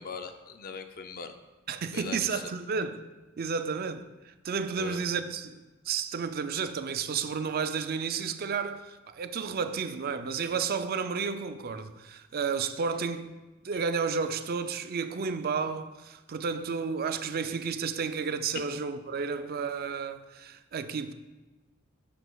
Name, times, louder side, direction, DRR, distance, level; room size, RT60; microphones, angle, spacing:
voice 1, 0.0-1.4 1.9-2.5 4.7-5.0, left 5 dB, 45° left, 0.5 m, -40 dB
voice 2, 1.7-3.0 3.4-13.3 13.6-21.1, right 5 dB, 45° right, 0.4 m, -32 dB
10.0 x 6.9 x 2.3 m
head